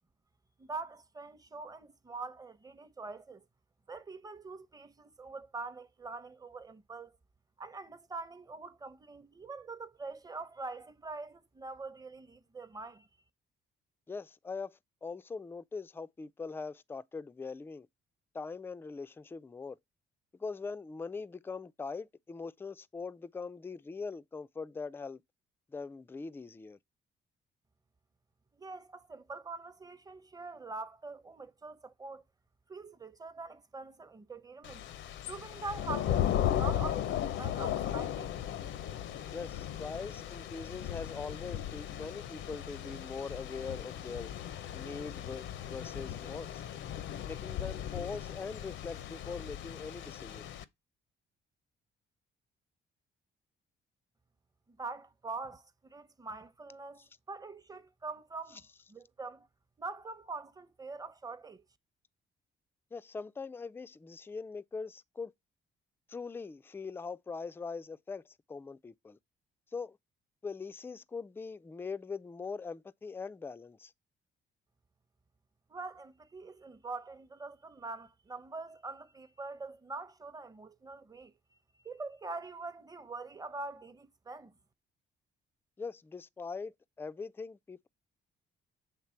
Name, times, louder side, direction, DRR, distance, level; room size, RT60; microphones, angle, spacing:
voice 1, 0.6-3.4 3.9-7.1 7.6-13.1 28.6-32.2 32.7-34.8 35.2-38.4 54.8-58.6 58.9-59.5 59.8-61.6 75.7-81.3 81.8-84.5, right 3 dB, 20° right, 0.7 m, -44 dB
voice 2, 14.1-17.9 18.3-19.8 20.4-25.2 25.7-26.8 39.3-44.3 44.7-46.6 47.2-50.5 62.9-65.3 66.1-69.2 69.7-70.0 70.4-73.9 85.8-87.9, left 4 dB, 10° left, 0.3 m, -42 dB
Thunder / Rain, 34.6-50.6, left 11 dB, 75° left, 0.6 m, -36 dB
7.3 x 3.3 x 4.4 m
cardioid pair, 90°, 20 cm